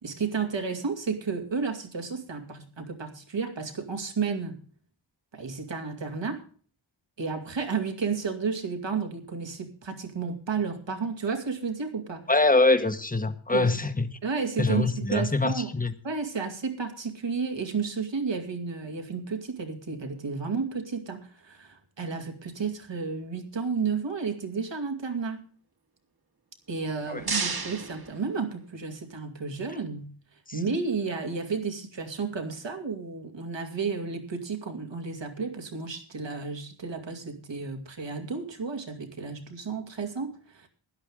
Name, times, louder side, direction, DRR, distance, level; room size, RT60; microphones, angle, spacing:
voice 1, 0.0-4.6 5.3-6.4 7.2-12.2 13.5-13.7 14.2-14.8 15.1-15.7 16.0-25.4 26.7-30.1 30.5-40.7, right 5 dB, 70° right, 2.5 m, -32 dB
voice 2, 12.3-14.1 14.6-15.9 27.1-27.2 30.5-30.6, left 2 dB, 20° left, 1.2 m, -24 dB
sound 1, 26.7-28.9, right 4 dB, 50° right, 2.0 m, -34 dB
16.5 x 11.5 x 3.6 m
wide cardioid pair, 85°, 47 cm